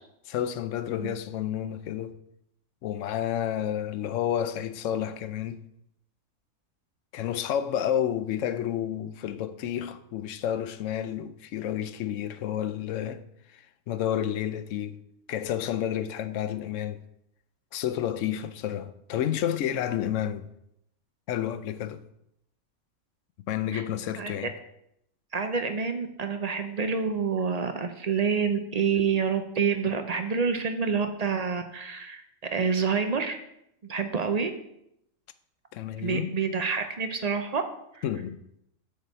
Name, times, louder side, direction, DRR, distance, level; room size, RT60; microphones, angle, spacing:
voice 1, 0.3-2.2 2.8-5.6 7.1-13.2 13.5-15.0 15.3-17.0 17.7-20.4 21.3-22.0 23.5-24.5 35.7-36.4 38.0-38.4, left 10 dB, 70° left, 0.8 m, -30 dB
voice 2, 25.3-32.2 32.5-33.4 33.9-34.5 36.0-37.6 38.0-38.1, right 5 dB, 45° right, 0.5 m, -27 dB
6.7 x 4.9 x 6.6 m
omnidirectional pair, 1.5 m